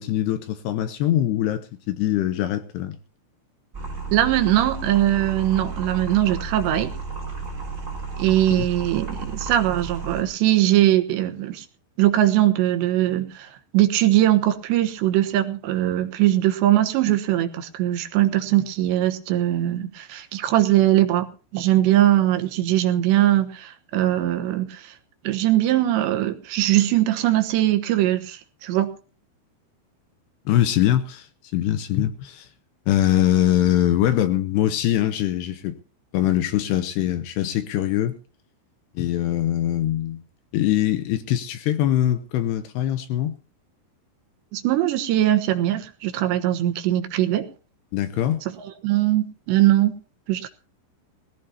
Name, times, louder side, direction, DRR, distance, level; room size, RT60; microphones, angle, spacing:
voice 1, 0.0-3.0 8.6-8.7 30.5-31.3 31.5-32.5 32.9-35.8 36.1-38.2 39.0-40.2 40.5-43.4 47.9-48.4, left 12 dB, 75° left, 2.6 m, -22 dB
sound 1, 3.7-10.2, right 4 dB, 15° right, 4.1 m, -33 dB
voice 2, 4.1-6.9 8.2-11.7 12.0-21.3 21.5-24.9 25.2-28.9 44.5-47.5 48.6-49.9 50.3-50.5, right 13 dB, 75° right, 3.2 m, -21 dB
20.5 x 15.5 x 2.9 m
omnidirectional pair, 5.5 m